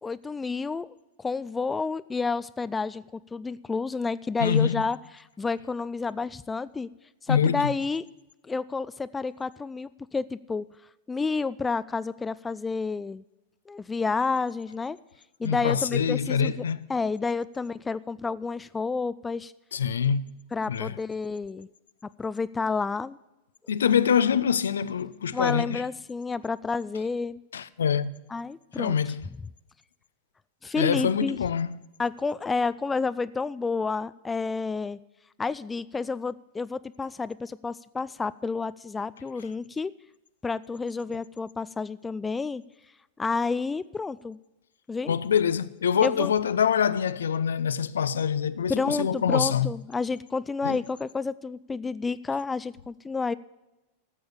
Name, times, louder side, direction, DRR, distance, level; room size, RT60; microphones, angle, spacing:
voice 1, 0.0-6.9 7.2-8.0 8.4-10.6 11.1-13.2 13.7-15.0 15.4-16.6 16.9-19.5 20.5-21.7 22.2-23.2 25.3-27.4 28.3-29.0 30.6-31.4 32.0-35.0 35.4-39.9 40.4-42.6 43.2-44.4 44.9-45.2 46.0-46.3 48.7-53.3, left 4 dB, 15° left, 0.3 m, -30 dB
voice 2, 4.4-4.8 7.3-7.7 15.4-16.9 19.7-20.3 20.7-21.0 23.7-25.8 27.5-28.1 28.8-29.2 30.8-31.7 45.1-49.7 50.6-50.8, left 7 dB, 65° left, 0.5 m, -25 dB
13.5 x 7.8 x 6.9 m
figure-of-eight pair, 90°, 0 cm